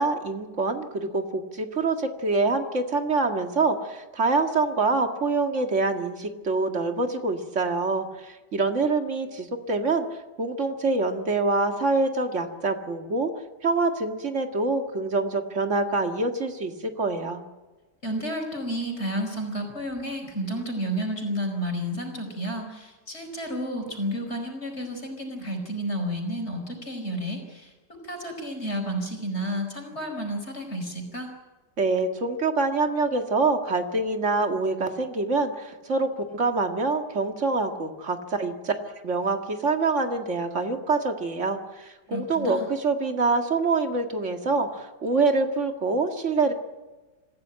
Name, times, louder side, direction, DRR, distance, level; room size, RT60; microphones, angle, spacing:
voice 1, 0.0-10.1 10.4-13.3 13.6-17.4 31.8-46.5, right 3 dB, 45° right, 5 dB, 2.2 m, -25 dB
voice 2, 18.0-27.7 28.0-31.3 42.1-42.7, equal, 40° left, 4 dB, 5.0 m, -31 dB
26.0 x 15.5 x 8.8 m, 1.2 s
omnidirectional pair, 1.8 m